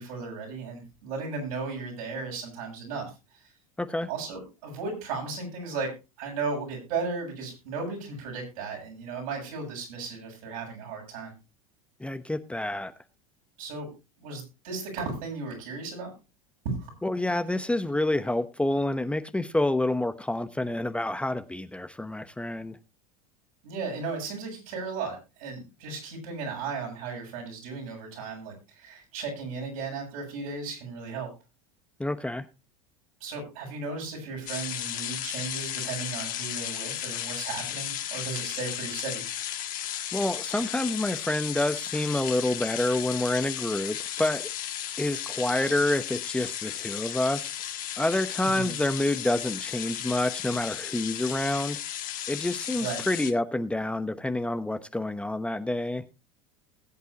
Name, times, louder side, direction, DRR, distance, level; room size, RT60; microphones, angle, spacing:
voice 1, 0.0-3.1 4.1-5.9 6.2-11.3 13.6-13.9 14.2-16.1 16.6-16.9 23.6-31.3 33.2-39.2 48.4-48.7 52.8-53.0, right 4 dB, 75° right, 0 dB, 7.7 m, -35 dB
voice 2, 3.8-4.1 12.0-12.9 17.0-22.8 32.0-32.4 40.1-44.4 45.0-47.6 48.0-51.8 52.3-56.0, left 1 dB, 5° left, 9 dB, 0.9 m, -28 dB
sound 1, 34.5-53.3, left 11 dB, 50° left, 1.9 m, -35 dB
20.5 x 8.2 x 2.8 m, 0.29 s
hypercardioid pair, 90°, 18 cm